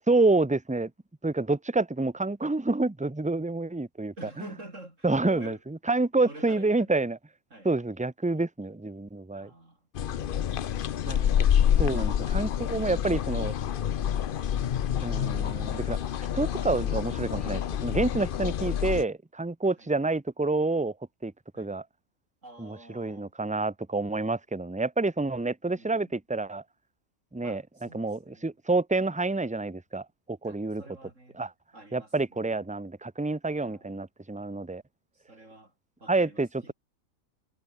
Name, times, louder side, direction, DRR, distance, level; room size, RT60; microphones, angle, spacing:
voice 1, 0.1-0.9 1.2-4.5 5.0-7.2 7.6-9.5 11.0-11.5 11.8-13.5 15.0-16.0 16.3-20.9 21.2-21.3 21.6-21.8 22.6-26.6 27.3-27.6 27.9-30.8 31.4-31.5 31.9-34.8 36.1-36.5, right 3 dB, 10° right, 0.5 m, -28 dB
voice 2, 4.2-5.6 6.2-6.9 7.5-7.7 9.3-9.8 12.2-12.5 19.8-19.9 21.5-21.7 22.4-23.3 25.7-26.1 27.4-28.5 30.4-31.4 31.7-32.7 33.6-34.0 35.1-35.7 36.0-36.7, right 2 dB, 60° right, 6.7 m, -49 dB
sound 1, 9.9-19.0, left 9 dB, 55° left, 0.6 m, -27 dB
omnidirectional pair, 1.5 m